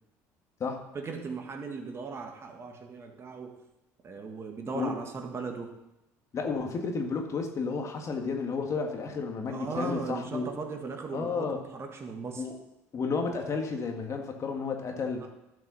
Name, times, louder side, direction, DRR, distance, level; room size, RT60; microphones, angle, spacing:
voice 1, 0.9-3.6 4.0-5.7 9.5-12.5 15.2-15.3, right 4 dB, 35° right, 3 dB, 1.7 m, -37 dB
voice 2, 6.3-10.5 11.1-11.6 12.4-12.5 12.9-15.3, left 4 dB, 40° left, 3 dB, 1.8 m, -32 dB
12.0 x 5.9 x 5.6 m, 0.93 s
supercardioid pair, 80°, 8 cm